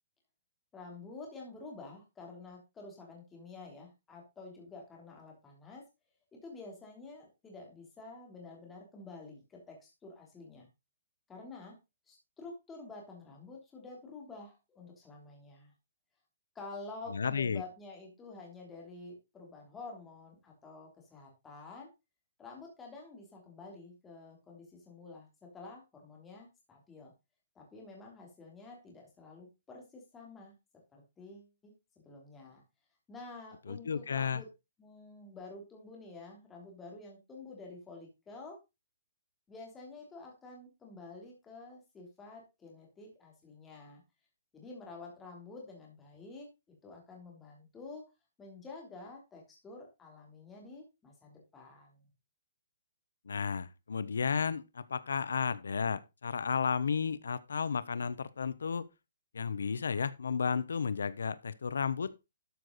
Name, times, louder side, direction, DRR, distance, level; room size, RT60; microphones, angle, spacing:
voice 1, 0.7-5.8 6.4-10.7 11.3-11.8 12.1-15.7 16.5-21.9 22.4-27.1 27.5-30.5 30.9-31.7 32.0-32.6 33.1-34.5 34.8-38.6 39.5-44.0 44.5-46.5 46.8-48.1 48.4-52.0, left 3 dB, 10° left, 3.3 m, -49 dB
voice 2, 17.1-17.6 33.7-34.4 53.3-58.9 59.3-62.1, left 6 dB, 90° left, 0.8 m, -33 dB
12.5 x 6.6 x 4.0 m
hypercardioid pair, 170°, 0 cm